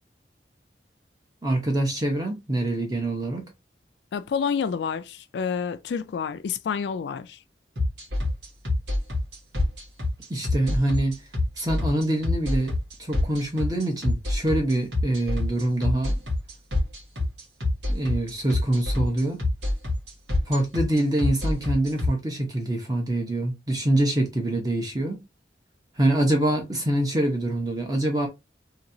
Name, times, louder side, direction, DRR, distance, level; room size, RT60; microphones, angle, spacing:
voice 1, 1.4-3.5 10.3-11.2 11.6-12.7 13.0-16.1 17.9-19.4 20.5-25.2 26.0-28.3, right 1 dB, 20° right, 0.9 m, -25 dB
voice 2, 4.1-7.4, left 6 dB, 75° left, 0.3 m, -28 dB
sound 1, 7.8-22.1, left 2 dB, 80° right, 1.5 m, -25 dB
3.0 x 2.8 x 2.6 m
head